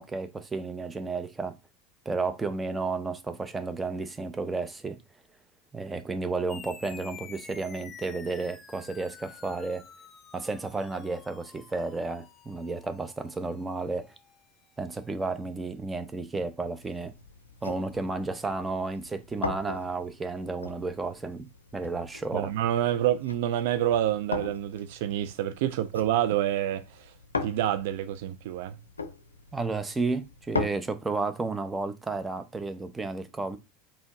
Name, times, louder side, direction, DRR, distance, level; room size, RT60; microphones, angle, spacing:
voice 1, 0.0-1.5 2.1-5.0 5.7-9.8 10.3-14.1 14.8-17.1 17.6-21.5 21.7-22.5 29.5-33.6, right 3 dB, 15° right, 0.7 m, -32 dB
sound 1, 6.5-15.4, left 6 dB, 30° left, 0.8 m, -50 dB
sound 2, 16.8-30.7, left 4 dB, 90° left, 0.5 m, -40 dB
voice 2, 22.3-27.1 27.4-28.8, right 12 dB, 65° right, 0.3 m, -27 dB
4.2 x 3.4 x 3.0 m
figure-of-eight pair, 75°, 0 cm